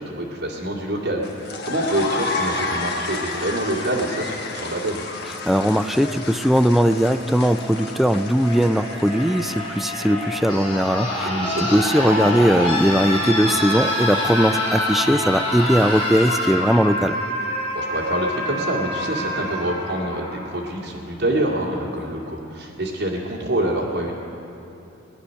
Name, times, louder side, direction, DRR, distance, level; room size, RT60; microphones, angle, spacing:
voice 1, 0.0-5.0 11.2-11.8 17.7-24.1, right 1 dB, 60° right, -4 dB, 2.1 m, -26 dB
sound 1, 1.2-10.6, left 3 dB, 60° left, 1.2 m, -31 dB
voice 2, 5.5-11.3 11.7-17.2, equal, ahead, 9 dB, 0.4 m, -19 dB
sound 2, 6.7-20.7 21.9-22.0, left 1 dB, 30° left, 3.6 m, -27 dB
18.5 x 10.0 x 6.4 m, 2.8 s
head